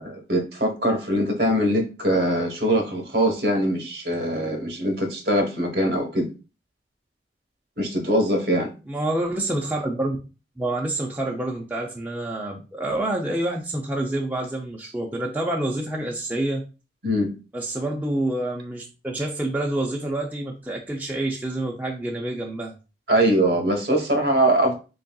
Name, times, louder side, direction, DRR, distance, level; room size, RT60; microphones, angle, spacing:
voice 1, 0.0-6.3 7.8-8.7 17.0-17.3 23.1-24.7, right 1 dB, 60° right, 2 dB, 1.1 m, -22 dB
voice 2, 8.9-10.2 10.6-16.6 17.5-22.7, right 1 dB, 10° right, -1 dB, 0.4 m, -27 dB
3.9 x 3.6 x 2.3 m, 0.32 s
head